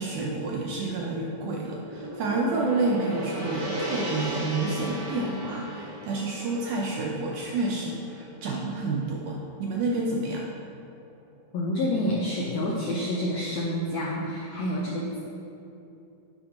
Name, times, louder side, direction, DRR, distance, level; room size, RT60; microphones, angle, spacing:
voice 1, 0.0-10.4, right 3 dB, 75° right, -2 dB, 1.9 m, -29 dB
Gong, 1.2-9.6, equal, 45° right, 1.5 m, -37 dB
voice 2, 11.5-15.2, left 1 dB, 80° left, -4 dB, 1.5 m, -28 dB
11.0 x 8.0 x 2.9 m, 2.7 s
omnidirectional pair, 4.2 m